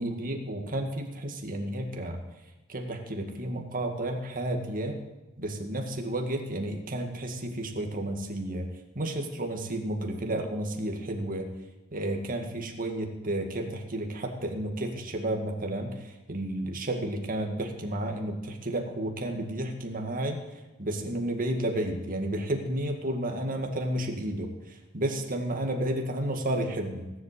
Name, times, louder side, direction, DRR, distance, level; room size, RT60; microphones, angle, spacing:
voice 1, 0.0-2.2 2.7-5.0 5.4-8.7 9.0-11.5 11.9-16.0 16.3-20.4 20.8-24.5 24.9-27.2, right 1 dB, 40° right, 3 dB, 1.9 m, -31 dB
17.5 x 7.9 x 8.2 m, 1.1 s
head